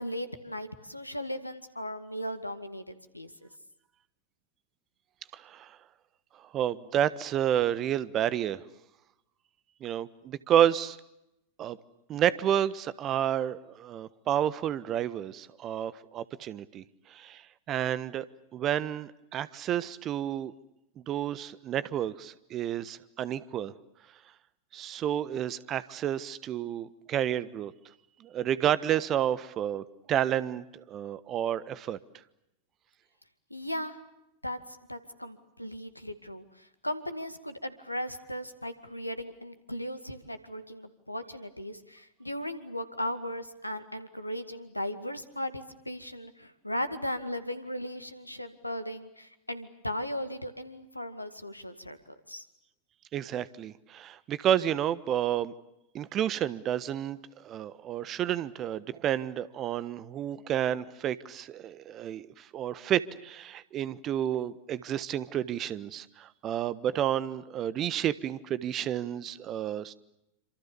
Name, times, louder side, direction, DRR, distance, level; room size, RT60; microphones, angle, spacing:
voice 1, 0.0-3.5 33.5-34.0 34.4-52.0 52.3-52.4, equal, 85° left, 10 dB, 2.2 m, -37 dB
voice 2, 5.3-5.7 6.5-8.6 9.8-11.0 11.6-11.8 12.1-16.8 17.1-17.4 17.7-18.3 18.5-20.5 21.1-23.7 24.7-27.7 28.2-32.0 53.1-55.5 55.9-57.2 57.4-69.9, right 10 dB, 30° right, 17 dB, 1.3 m, -30 dB
28.0 x 26.5 x 7.0 m, 0.85 s
figure-of-eight pair, 90°, 0 cm